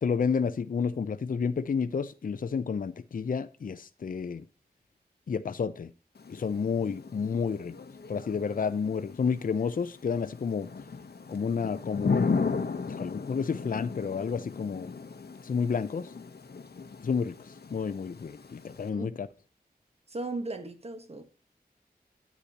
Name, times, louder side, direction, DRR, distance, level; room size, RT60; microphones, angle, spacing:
voice 1, 0.0-4.4 5.3-5.9 6.3-7.8 8.1-10.7 11.3-12.4 12.9-14.9 15.4-16.1 17.0-19.3, left 6 dB, 60° left, 0.5 m, -30 dB
Thunder / Rain, 6.2-18.9, left 5 dB, 85° left, 1.0 m, -36 dB
voice 2, 20.1-21.2, right 2 dB, 40° right, 1.4 m, -36 dB
10.0 x 8.2 x 2.9 m
wide cardioid pair, 85°, 16 cm